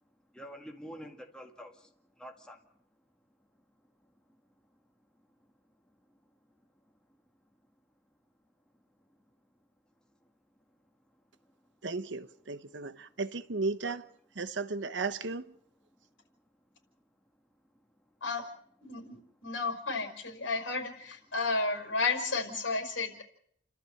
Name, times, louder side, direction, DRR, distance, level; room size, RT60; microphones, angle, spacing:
voice 1, 0.3-1.9 2.2-2.6 13.8-14.0, equal, 5° left, 1.9 m, -46 dB
voice 2, 11.8-14.1 14.3-15.5, right 3 dB, 70° right, 1.0 m, -35 dB
voice 3, 18.8-23.2, left 3 dB, 75° left, 5.5 m, -32 dB
30.0 x 13.0 x 7.8 m
head